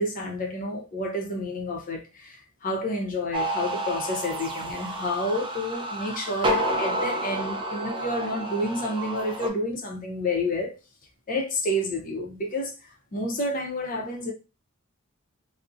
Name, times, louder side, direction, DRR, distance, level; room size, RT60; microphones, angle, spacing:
voice 1, 0.0-10.8 11.3-12.7 13.1-14.3, left 1 dB, 40° left, 0.5 m, -29 dB
sound 1, 3.3-9.5, right 1 dB, 20° right, 0.3 m, -30 dB
2.6 x 2.0 x 2.4 m
head